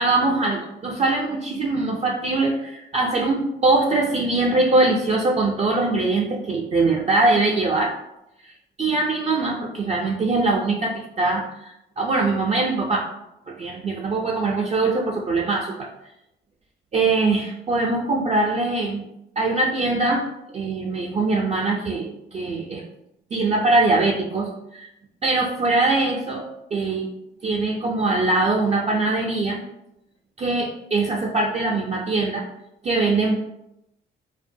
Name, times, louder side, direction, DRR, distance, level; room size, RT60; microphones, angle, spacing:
voice 1, 0.0-7.9 8.4-8.5 8.8-13.1 13.5-15.9 16.9-19.0 19.4-20.2 20.5-22.8 23.3-24.9 25.2-27.1 27.4-29.6 30.4-32.4 32.8-33.4, right 3 dB, 35° right, -2 dB, 0.4 m, -22 dB
2.5 x 2.2 x 2.6 m, 0.85 s
cardioid pair, 90°, 20 cm